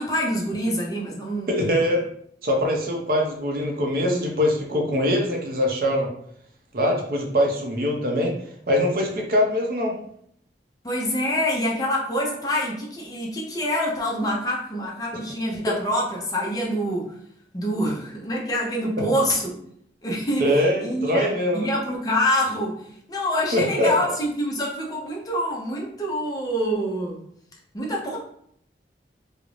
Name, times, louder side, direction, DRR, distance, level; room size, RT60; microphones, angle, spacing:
voice 1, 0.0-1.5 10.8-17.1 17.5-19.6 20.0-27.2 27.7-28.2, equal, 20° left, -3 dB, 0.5 m, -26 dB
voice 2, 1.5-2.0 2.4-6.1 6.7-8.3 8.7-10.0 20.4-21.7 23.5-23.9, left 1 dB, 55° right, 1 dB, 0.5 m, -22 dB
2.4 x 2.0 x 3.0 m, 0.67 s
head